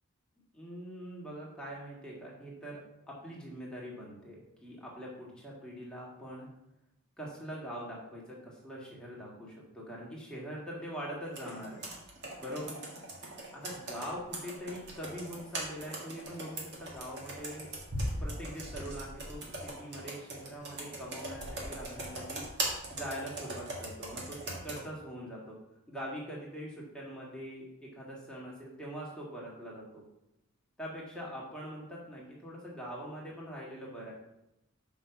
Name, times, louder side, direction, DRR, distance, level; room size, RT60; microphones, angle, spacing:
voice 1, 0.5-2.8 3.1-6.5 7.2-11.8 12.4-12.7 13.5-17.7 18.2-22.4 22.9-25.6 25.9-30.0 30.8-34.1, equal, 5° left, -5 dB, 1.8 m, -43 dB
Computer keyboard, 11.3-24.8, right 1 dB, 50° right, 1.8 m, -40 dB
5.8 x 5.4 x 5.9 m, 0.87 s
head